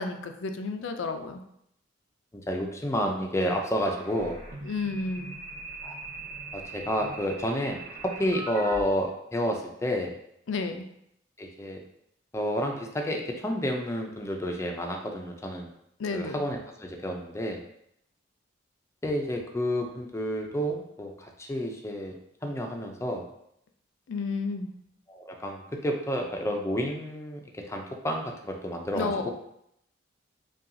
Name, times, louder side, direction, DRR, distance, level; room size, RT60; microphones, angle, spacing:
voice 1, 0.0-1.4 4.6-5.4 10.5-10.9 16.0-16.4 24.1-24.7 29.0-29.3, left 4 dB, 75° left, 6 dB, 0.4 m, -31 dB
voice 2, 2.3-4.4 5.8-6.0 6.5-10.1 11.4-11.8 12.3-15.7 16.1-17.6 19.0-22.2 22.4-23.3 25.1-29.3, equal, 15° left, 2 dB, 0.4 m, -30 dB
sound 1, 3.8-8.8, right 2 dB, 55° right, 0.9 m, -41 dB
5.5 x 2.3 x 2.6 m, 0.76 s
head